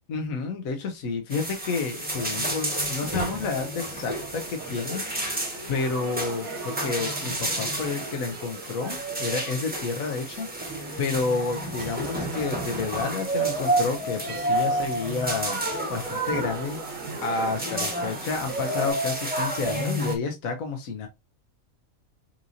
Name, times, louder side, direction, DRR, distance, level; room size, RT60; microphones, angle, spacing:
voice 1, 0.1-5.3 5.7-16.8 17.2-21.1, left 4 dB, 75° left, 1.3 m, -30 dB
sound 1, 1.3-20.2, right 1 dB, 5° right, 1.0 m, -30 dB
sound 2, 3.9-18.9, right 4 dB, 70° right, 1.4 m, -41 dB
5.9 x 2.8 x 2.5 m
omnidirectional pair, 1.5 m